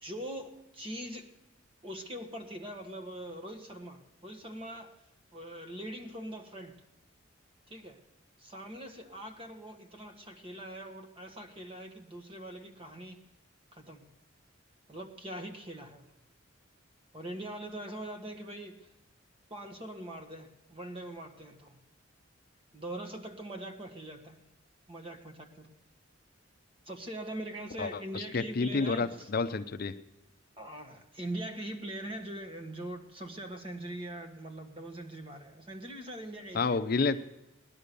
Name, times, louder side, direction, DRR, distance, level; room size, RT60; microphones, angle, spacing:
voice 1, 0.0-1.3 1.8-4.9 5.3-6.8 7.7-8.0 8.4-13.2 13.7-14.1 14.9-16.1 17.1-18.9 19.5-21.8 22.7-24.5 24.9-25.7 26.8-29.3 30.6-36.8, right 1 dB, 25° right, 6 dB, 1.4 m, -42 dB
voice 2, 27.8-29.9 36.5-37.2, left 4 dB, 45° left, 9 dB, 0.5 m, -30 dB
17.5 x 11.0 x 6.7 m, 0.91 s
head